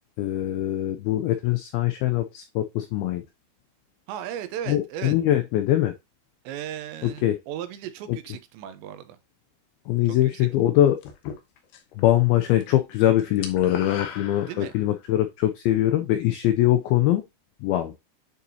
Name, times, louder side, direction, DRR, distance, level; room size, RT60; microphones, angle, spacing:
voice 1, 0.2-3.2 4.7-5.9 7.0-7.4 9.9-11.0 12.0-17.2 17.6-17.9, left 13 dB, 90° left, 2.1 m, -22 dB
voice 2, 4.1-5.2 6.4-9.2 10.1-10.8 14.4-14.7, right 10 dB, 90° right, 3.0 m, -36 dB
sound 1, 11.0-12.0 12.3-12.7 12.9-15.0, left 7 dB, 75° left, 2.8 m, -38 dB
9.3 x 4.0 x 2.7 m
omnidirectional pair, 5.0 m